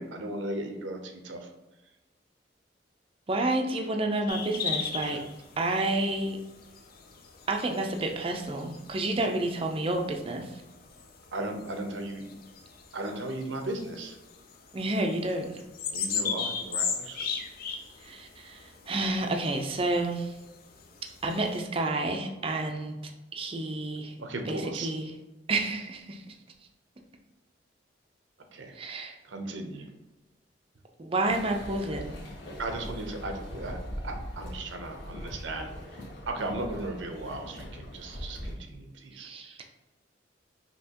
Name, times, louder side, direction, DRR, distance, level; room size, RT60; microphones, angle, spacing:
voice 1, 0.0-1.5 5.0-5.2 11.3-12.2 12.9-14.2 15.9-17.3 24.2-24.9 28.5-28.7 29.2-29.9 32.6-33.8 34.0-35.7 36.3-39.3, right 2 dB, 85° right, 4 dB, 0.7 m, -36 dB
voice 2, 3.3-5.2 5.6-6.4 7.5-10.5 14.7-15.6 18.0-20.3 21.2-23.0 23.3-24.1 24.5-25.1 25.5-26.3 28.7-29.2 31.0-32.2 39.1-39.6, right 2 dB, 30° right, 3 dB, 0.5 m, -30 dB
sound 1, 4.3-21.6, left 6 dB, 50° left, 0.5 m, -38 dB
sound 2, 31.2-38.6, equal, 75° left, 1.2 m, -41 dB
5.5 x 2.9 x 2.9 m, 1.0 s
head